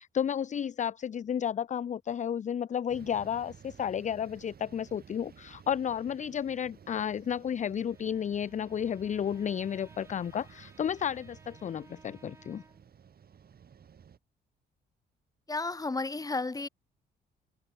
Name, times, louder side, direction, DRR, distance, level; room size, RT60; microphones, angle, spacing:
voice 1, 0.0-12.6, left 8 dB, 40° left, 0.5 m, -32 dB
sound 1, 2.9-14.2, right 7 dB, 50° right, 3.4 m, -54 dB
Bowed string instrument, 7.7-13.0, right 2 dB, 15° right, 6.0 m, -59 dB
voice 2, 15.5-16.7, left 3 dB, 20° left, 1.6 m, -32 dB
open air
cardioid pair, 90°, 20 cm